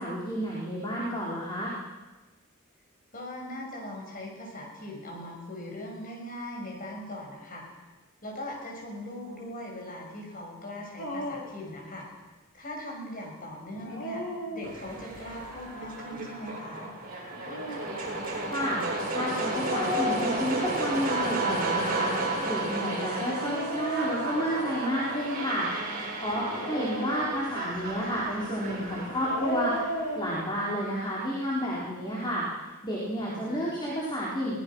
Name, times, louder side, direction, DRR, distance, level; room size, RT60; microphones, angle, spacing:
voice 1, 0.0-1.7 18.5-18.8 19.1-22.1 22.4-29.8 30.1-32.5 32.8-34.6, equal, 20° left, -5 dB, 4.0 m, -31 dB
voice 2, 3.1-7.6 8.2-12.1 12.5-16.9 33.1-33.8, left 1 dB, 40° left, 0 dB, 6.5 m, -40 dB
Dog, 11.0-11.6 13.7-15.1 17.2-17.9 19.5-20.9 21.9-25.0 26.3-27.7 29.0-30.4, left 1 dB, 65° left, 4.1 m, -36 dB
sound 1, 14.6-30.6, right 2 dB, 45° right, 7.1 m, -33 dB
23.0 x 18.5 x 6.3 m, 1.2 s
head